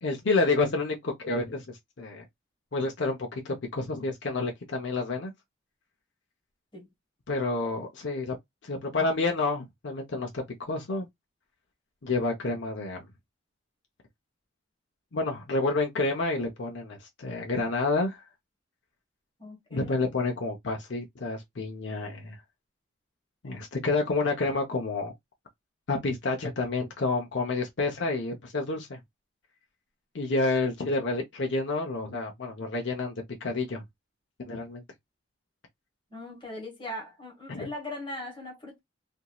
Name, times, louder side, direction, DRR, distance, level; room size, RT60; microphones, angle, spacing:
voice 1, 0.0-2.3 2.7-5.3 7.3-8.4 8.6-11.1 12.0-13.1 15.1-18.2 19.7-22.4 23.4-25.1 25.9-29.0 30.1-33.1 33.4-33.8 34.5-34.8 37.5-37.7, left 3 dB, 70° left, 0.7 m, -29 dB
voice 2, 19.4-20.1 36.1-38.8, left 1 dB, 25° left, 1.3 m, -40 dB
2.9 x 2.6 x 2.3 m
head